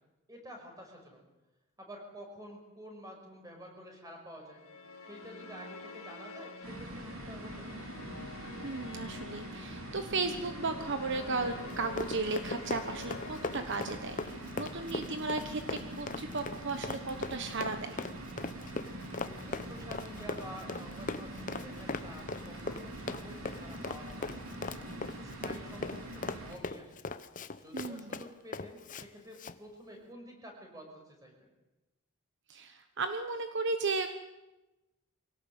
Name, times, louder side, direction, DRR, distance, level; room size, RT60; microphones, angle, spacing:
voice 1, 0.3-1.2 1.8-4.6 5.0-7.8 19.1-24.4 24.9-26.9 27.6-31.5, equal, 15° right, 1 dB, 5.9 m, -49 dB
sound 1, 4.5-14.9, left 3 dB, 75° left, 2.5 m, -48 dB
sound 2, 6.6-26.5, right 1 dB, 75° right, 3.7 m, -44 dB
voice 2, 8.6-18.0 27.7-28.2 32.5-34.1, right 3 dB, 55° right, 8 dB, 1.2 m, -35 dB
Run, 11.7-29.1 29.3-29.6, left 3 dB, 35° left, 0.9 m, -39 dB
24.0 x 17.5 x 8.3 m, 1.0 s
head